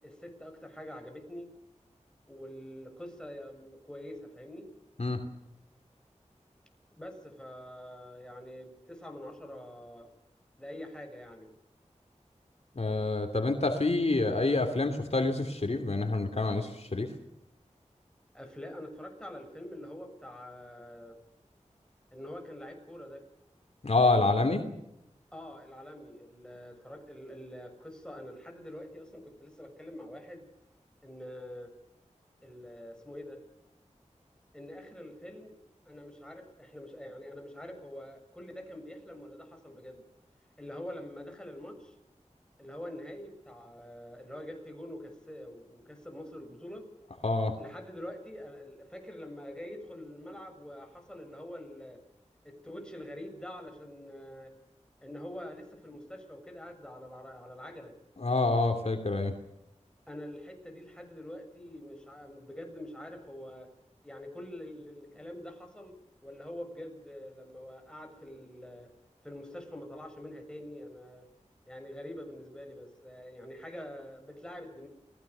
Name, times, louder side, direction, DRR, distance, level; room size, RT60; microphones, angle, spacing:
voice 1, 0.0-1.5 2.3-4.7 7.0-10.1 10.6-11.5 18.3-21.2 22.1-23.2 25.3-30.5 31.0-31.7 32.4-33.4 34.5-35.6 35.9-40.1 40.6-41.9 42.6-46.8 47.6-52.0 52.4-54.5 55.0-57.9 60.1-63.7 64.0-68.9 69.2-71.3 71.7-74.9, left 1 dB, 5° left, 4 dB, 7.2 m, -45 dB
voice 2, 12.7-17.1 23.8-24.6 47.2-47.5 58.2-59.3, left 3 dB, 55° left, 5 dB, 3.0 m, -27 dB
29.5 x 20.5 x 7.0 m, 0.84 s
wide cardioid pair, 65°, 13 cm